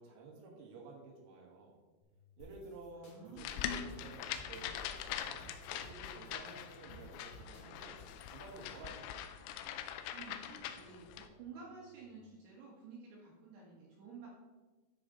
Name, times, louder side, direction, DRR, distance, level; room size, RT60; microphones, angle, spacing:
voice 1, 0.0-1.8 2.4-8.0 8.3-9.1, right 3 dB, 85° right, -1 dB, 4.4 m, -52 dB
sound 1, 2.0-12.0, right 8 dB, 70° left, 4.1 m, -68 dB
sound 2, 2.4-8.7, left 1 dB, 55° left, 1.9 m, -57 dB
voice 2, 2.9-4.1 10.1-14.3, right 4 dB, 65° right, -3 dB, 2.9 m, -52 dB
sound 3, 3.4-11.3, left 10 dB, 90° left, 3.3 m, -43 dB
13.0 x 5.0 x 3.9 m, 1.2 s
omnidirectional pair, 5.9 m